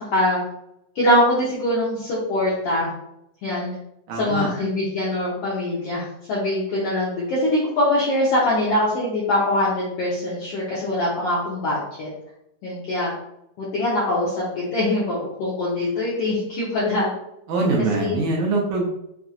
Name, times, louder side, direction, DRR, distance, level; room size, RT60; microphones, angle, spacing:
voice 1, 0.9-2.9 3.4-3.7 4.1-12.1 12.6-13.1 13.6-17.1 18.0-18.2, left 1 dB, 75° left, -7 dB, 1.4 m, -23 dB
voice 2, 4.1-4.5 17.5-18.9, right 2 dB, 75° right, -3 dB, 1.9 m, -23 dB
5.8 x 2.6 x 2.4 m, 0.81 s
omnidirectional pair, 3.9 m